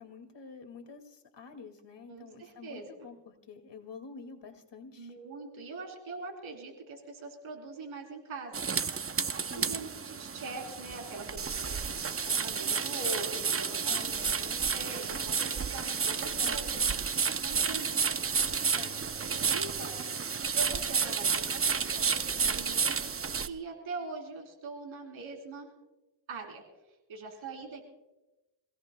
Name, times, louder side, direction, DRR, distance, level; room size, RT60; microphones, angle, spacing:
voice 1, 0.0-5.1 9.4-9.8 11.7-12.1 13.9-14.6 16.4-17.1 18.7-19.1, left 5 dB, 60° left, 5 dB, 2.2 m, -49 dB
voice 2, 2.1-2.9 5.0-8.5 9.5-11.7 12.2-13.8 14.7-16.7 17.4-18.2 19.1-20.0 20.5-23.0 23.5-25.7 26.3-26.6 27.1-27.8, right 3 dB, 90° right, 2 dB, 3.7 m, -42 dB
sound 1, 8.5-23.5, right 6 dB, 30° right, 0.7 m, -31 dB
26.5 x 17.0 x 2.2 m, 1.0 s
cardioid pair, 75°, 47 cm